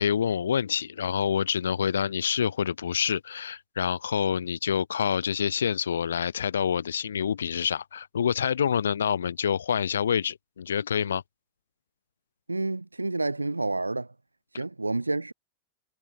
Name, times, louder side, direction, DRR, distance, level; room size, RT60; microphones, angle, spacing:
voice 1, 0.0-11.2, left 8 dB, 70° left, 3.6 m, -27 dB
voice 2, 12.5-14.1 14.5-15.3, right 2 dB, 80° right, 7.4 m, -29 dB
figure-of-eight pair, 90°, 0 cm